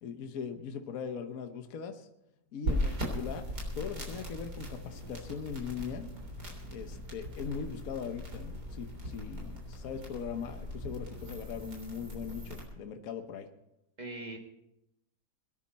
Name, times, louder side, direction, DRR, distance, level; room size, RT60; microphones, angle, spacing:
voice 1, 0.0-2.1 2.5-3.5 3.7-6.1 6.7-13.5, left 6 dB, 55° left, 6 dB, 1.3 m, -40 dB
sound 1, 2.6-12.6, equal, 60° right, 4.0 m, -39 dB
voice 2, 14.0-14.4, right 2 dB, 25° right, 2 dB, 1.9 m, -43 dB
23.0 x 10.0 x 4.2 m, 0.87 s
omnidirectional pair, 2.0 m